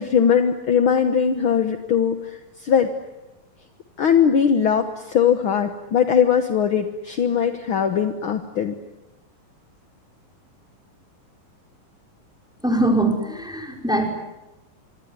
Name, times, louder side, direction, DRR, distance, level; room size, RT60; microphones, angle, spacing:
voice 1, 0.0-2.9 4.0-8.7, left 7 dB, 60° left, 7 dB, 1.4 m, -20 dB
voice 2, 12.6-14.1, right 1 dB, ahead, 2 dB, 4.7 m, -22 dB
25.0 x 24.5 x 9.8 m, 0.99 s
omnidirectional pair, 4.0 m